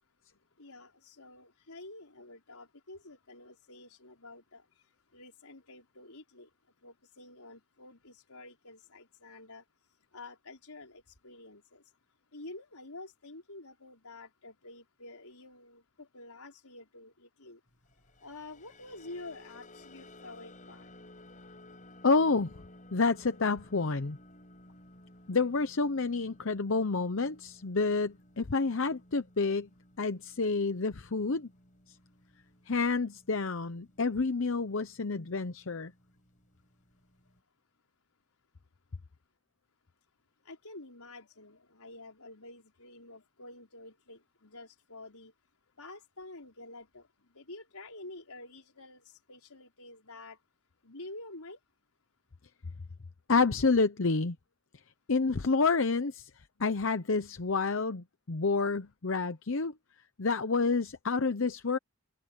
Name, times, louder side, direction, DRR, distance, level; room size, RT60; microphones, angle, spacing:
voice 1, 0.6-4.6 5.1-6.5 6.8-9.6 10.1-11.8 12.3-17.6 18.2-20.9 40.4-45.3 45.8-47.1 47.3-50.4 50.8-51.6, left 2 dB, 85° left, 5.0 m, -49 dB
sound 1, 18.1-34.4 34.8-35.1 35.4-35.7, left 1 dB, 35° left, 7.7 m, -56 dB
voice 2, 22.0-22.5 22.9-24.2 25.3-29.7 30.0-31.5 32.7-35.9 53.3-54.4 55.1-56.3 56.6-59.7 60.2-61.8, left 4 dB, 65° left, 0.8 m, -29 dB
head